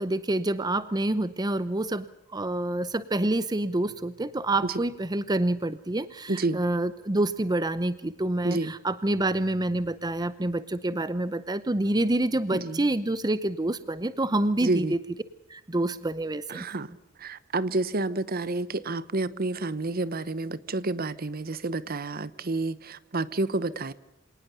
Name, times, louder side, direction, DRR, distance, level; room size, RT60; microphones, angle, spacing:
voice 1, 0.0-2.1 2.3-15.0 15.5-16.7, right 1 dB, 20° right, 0.7 m, -27 dB
voice 2, 6.3-6.6 8.4-8.7 12.5-12.8 14.6-14.9 16.5-16.9 17.2-23.9, right 2 dB, 50° right, 1.0 m, -29 dB
26.5 x 18.5 x 6.8 m
head